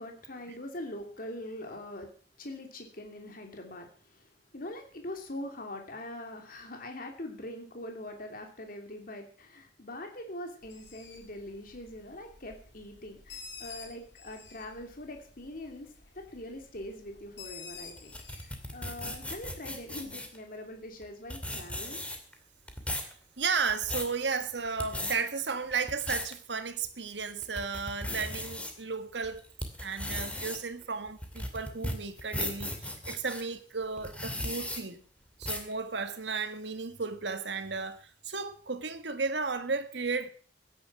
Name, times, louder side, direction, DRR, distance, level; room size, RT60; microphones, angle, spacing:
voice 1, 0.0-2.1 2.4-18.1 18.4-22.0, left 1 dB, 55° left, 2.9 m, -43 dB
Bird, 10.6-20.3, left 5 dB, 85° left, 3.2 m, -51 dB
sound 1, 18.0-20.4 21.0-21.1 21.3-22.3 22.7-23.1 23.6-24.1 24.7-25.2 25.7-26.3 26.8-26.9 27.4-28.7 29.2-33.4 34.0-34.8 35.4-35.7, left 1 dB, 5° left, 2.5 m, -36 dB
voice 2, 23.0-29.4 29.8-35.0 35.4-40.3, right 4 dB, 80° right, 1.6 m, -34 dB
16.0 x 10.0 x 6.0 m
head